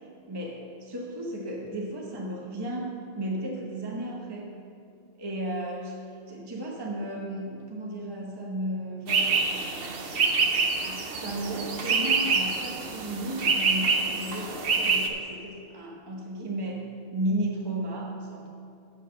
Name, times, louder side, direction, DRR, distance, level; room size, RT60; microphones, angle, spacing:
voice 1, 0.3-4.5 5.2-6.0 6.3-10.3 10.8-18.5, right 1 dB, 20° right, -2 dB, 0.9 m, -34 dB
sound 1, 9.1-15.1, right 4 dB, 60° right, 1.0 m, -26 dB
7.2 x 6.4 x 7.6 m, 2.6 s
omnidirectional pair, 1.2 m